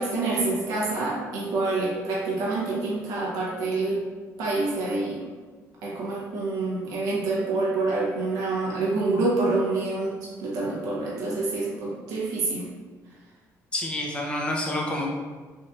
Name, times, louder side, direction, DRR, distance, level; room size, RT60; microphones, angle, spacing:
voice 1, 0.0-4.0 4.4-5.2 5.8-12.7, right 3 dB, 85° right, -5 dB, 1.1 m, -27 dB
voice 2, 13.7-15.1, left 1 dB, 15° left, -2 dB, 0.7 m, -28 dB
3.9 x 2.7 x 2.5 m, 1.4 s
cardioid pair, 120°, 6 cm